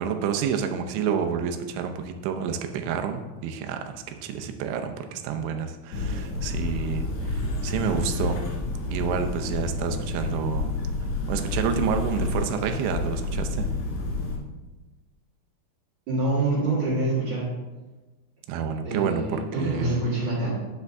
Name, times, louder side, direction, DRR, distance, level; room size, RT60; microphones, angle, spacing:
voice 1, 0.0-8.4 8.9-10.7 11.3-13.7 18.5-20.0, right 7 dB, 90° right, 6 dB, 3.1 m, -29 dB
sound 1, 5.9-14.4, left 2 dB, 55° left, 2.6 m, -29 dB
voice 2, 16.1-17.5 18.8-20.5, right 2 dB, 50° right, -8 dB, 3.3 m, -26 dB
10.5 x 6.6 x 3.5 m, 1.2 s
omnidirectional pair, 5.1 m